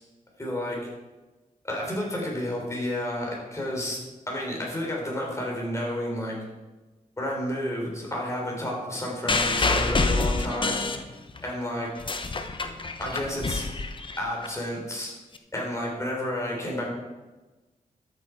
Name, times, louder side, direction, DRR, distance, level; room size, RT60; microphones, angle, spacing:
voice 1, 0.4-0.8 1.6-4.0 4.3-6.4 7.2-10.8 11.4-11.9 13.0-13.7 14.2-15.1 15.5-16.9, left 1 dB, 20° left, -2 dB, 4.0 m, -31 dB
sound 1, 9.3-11.5 11.9-14.5 15.3-15.4, left 3 dB, 35° left, 0.9 m, -27 dB
12.5 x 7.3 x 4.7 m, 1.2 s
wide cardioid pair, 100°, 14 cm